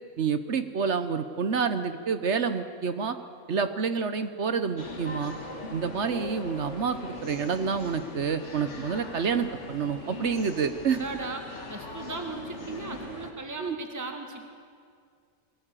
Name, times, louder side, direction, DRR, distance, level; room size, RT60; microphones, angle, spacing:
voice 1, 0.2-3.2 3.5-5.3 5.7-11.0 13.6-13.8, right 6 dB, 50° right, 10 dB, 1.1 m, -28 dB
sound 1, 4.8-13.3, left 2 dB, 50° left, 2.2 m, -40 dB
voice 2, 10.9-11.4 11.7-14.5, right 3 dB, 10° right, 4 dB, 1.7 m, -37 dB
21.5 x 17.0 x 9.1 m, 2.2 s
omnidirectional pair, 1.6 m